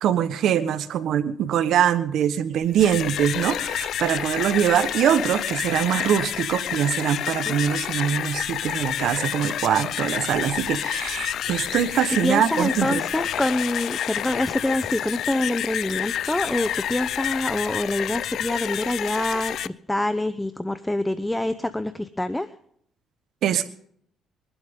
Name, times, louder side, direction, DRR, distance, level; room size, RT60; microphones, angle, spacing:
voice 1, 0.0-13.0 23.4-23.7, right 9 dB, 70° right, 12 dB, 1.3 m, -23 dB
sound 1, 2.6-19.7, left 10 dB, 65° left, 0.6 m, -29 dB
voice 2, 12.2-22.5, left 1 dB, 10° left, 12 dB, 0.8 m, -26 dB
27.0 x 12.0 x 3.8 m, 0.66 s
cardioid pair, 105°, 0 cm